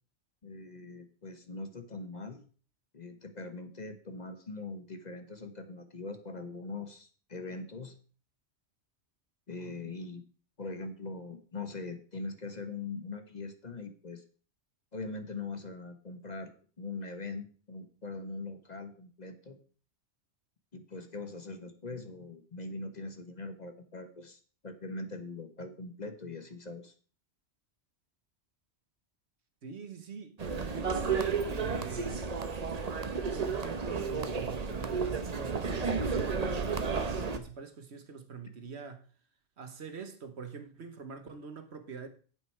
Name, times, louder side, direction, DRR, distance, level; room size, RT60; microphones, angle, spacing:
voice 1, 0.4-2.4 2.9-7.9 9.5-10.2 10.6-14.2 14.9-19.6 20.7-26.9, left 3 dB, 40° left, 1.2 m, -42 dB
voice 2, 29.6-32.3 33.3-39.0 39.6-42.1, right 5 dB, 75° right, 1.5 m, -44 dB
sound 1, 30.4-37.4, right 5 dB, 40° right, 0.9 m, -32 dB
9.3 x 8.1 x 4.6 m
omnidirectional pair, 1.1 m